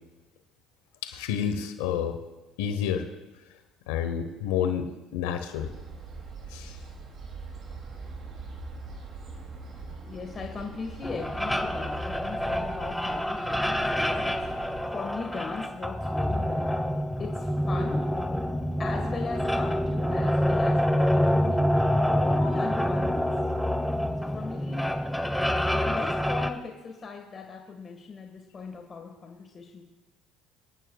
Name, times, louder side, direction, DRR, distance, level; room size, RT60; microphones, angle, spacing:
voice 1, 1.0-2.2 2.6-3.1 3.9-5.7 6.5-6.8, left 8 dB, 90° left, 7 dB, 0.9 m, -29 dB
sound 1, 5.6-14.8, right 4 dB, 55° right, 2.6 m, -42 dB
voice 2, 10.0-16.7 17.2-18.1 18.8-21.7 22.0-23.3 24.2-24.9 25.7-29.8, left 4 dB, 35° left, 2 dB, 1.6 m, -38 dB
sound 2, 11.0-26.5, equal, 5° left, 0.9 m, -27 dB
25.5 x 9.4 x 2.3 m, 1.1 s
supercardioid pair, 85°, 0 cm